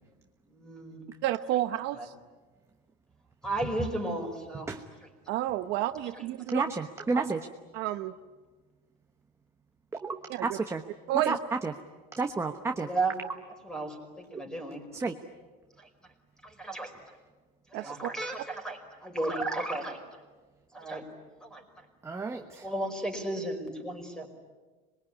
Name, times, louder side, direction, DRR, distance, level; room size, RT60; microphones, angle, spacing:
voice 1, 0.5-1.0 2.0-2.1 3.4-4.7 6.2-6.3 12.8-13.2 13.6-14.9 15.8-15.9 16.4-16.9 17.7-20.0 20.7-21.1 21.4-21.6 22.3-24.3, right 2 dB, 5° left, 4 dB, 5.1 m, -34 dB
voice 2, 1.2-2.1 5.3-6.6 7.7-8.1 10.3-10.6 11.1-11.4 17.7-17.9, right 14 dB, 55° right, 10 dB, 0.9 m, -30 dB
voice 3, 6.5-7.4 9.9-10.8 11.3-11.4 11.6-11.7 12.2-12.9 14.3-14.4 14.9-15.1 22.0-22.6, right 3 dB, 15° right, 5 dB, 1.1 m, -31 dB
26.5 x 22.5 x 10.0 m, 1.3 s
cardioid pair, 140°, 21 cm